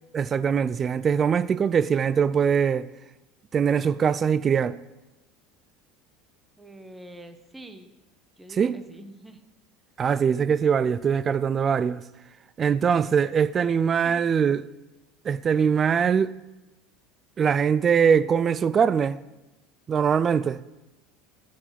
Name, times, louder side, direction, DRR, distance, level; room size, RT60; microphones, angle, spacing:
voice 1, 0.1-2.9 3.5-4.8 8.6-8.8 10.0-12.0 12.6-14.6 15.3-16.3 17.4-19.2 19.9-20.6, right 7 dB, 35° right, 0.3 m, -22 dB
voice 2, 6.6-7.9 8.4-9.4, right 1 dB, 10° right, 0.8 m, -45 dB
8.6 x 4.9 x 5.8 m
supercardioid pair, 95°, 0 cm